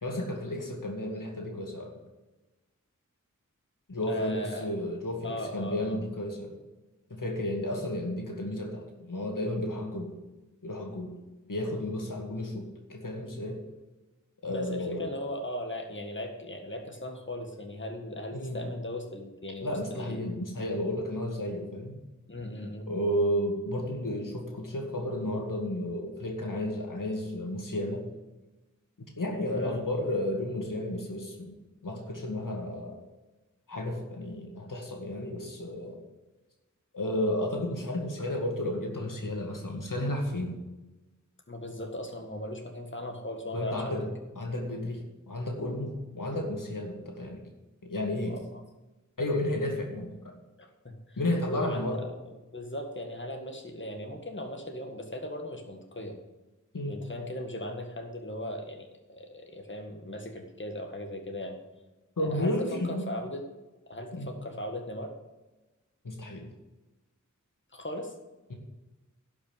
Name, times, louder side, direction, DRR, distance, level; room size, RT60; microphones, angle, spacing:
voice 1, 0.0-1.9 3.9-6.6 7.1-10.2 10.6-11.2 11.5-13.6 14.4-15.1 18.3-18.6 19.6-22.0 22.9-28.1 29.2-31.6 31.8-33.0 33.7-36.0 36.9-40.6 43.5-44.1 44.4-47.5 47.8-48.4 49.2-50.4 51.2-52.0 56.7-57.1 62.2-63.1 64.1-64.3 66.0-66.5, left 1 dB, 85° left, 1 dB, 2.2 m, -32 dB
voice 2, 4.1-4.7 5.2-6.0 14.4-20.2 22.3-22.9 29.5-29.8 41.5-44.1 48.2-48.4 50.6-51.2 51.5-51.9 52.5-56.2 56.9-61.6 62.2-62.5 62.8-63.4 63.9-65.1 67.7-68.1, left 1 dB, 40° left, 3 dB, 1.8 m, -38 dB
11.5 x 6.0 x 9.1 m, 1.1 s
wide cardioid pair, 40°, 31 cm